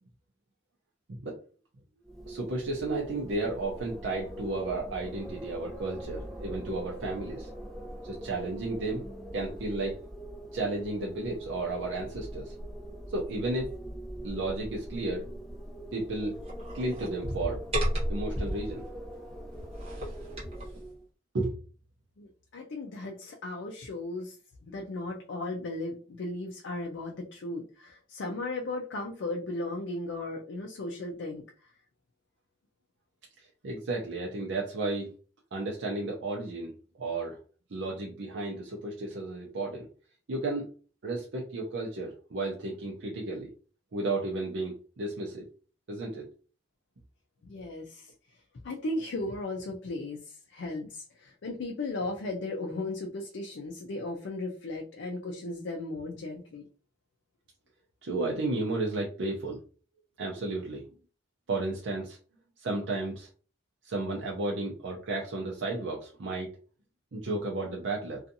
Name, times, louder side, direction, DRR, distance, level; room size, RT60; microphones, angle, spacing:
Wind, 2.0-21.0, equal, ahead, 0.7 m, -40 dB
voice 1, 2.3-7.5 8.0-9.1 9.3-10.0 10.5-12.5 13.1-13.8 14.2-15.3 15.9-16.4 16.7-17.6 18.1-18.8 21.3-21.5 33.4-35.1 35.5-37.4 37.7-39.9 40.3-40.7 41.0-43.5 43.9-45.5 45.9-46.3 58.0-59.6 60.2-60.8 61.5-62.2 62.6-63.3 63.8-66.5 67.1-68.2, right 2 dB, 80° right, -2 dB, 0.5 m, -33 dB
sound 1, 16.4-18.9 19.5-20.7, equal, 35° right, 1.0 m, -36 dB
voice 2, 22.2-24.4 24.6-31.4 47.4-48.1 48.6-56.7, left 2 dB, 80° left, 1 dB, 0.4 m, -36 dB
2.6 x 2.4 x 2.6 m, 0.39 s
head